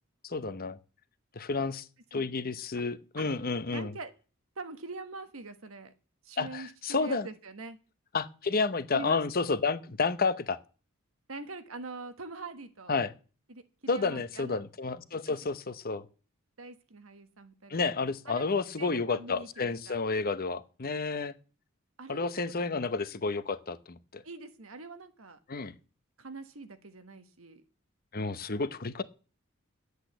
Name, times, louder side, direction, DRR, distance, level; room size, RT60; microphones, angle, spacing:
voice 1, 0.2-0.8 1.3-3.9 6.4-7.3 8.1-10.6 12.9-13.1 13.9-16.1 17.7-21.3 22.1-24.2 25.5-25.7 28.1-29.0, left 4 dB, 45° left, 13 dB, 0.9 m, -31 dB
voice 2, 3.7-4.1 4.5-5.9 6.2-7.8 8.9-9.2 11.3-12.9 13.5-14.6 15.3-15.4 16.6-17.9 18.3-20.0 22.0-22.3 22.6-22.9 24.2-25.4 26.2-27.6, right 3 dB, 80° right, 9 dB, 1.5 m, -44 dB
10.5 x 8.2 x 8.0 m, 0.37 s
head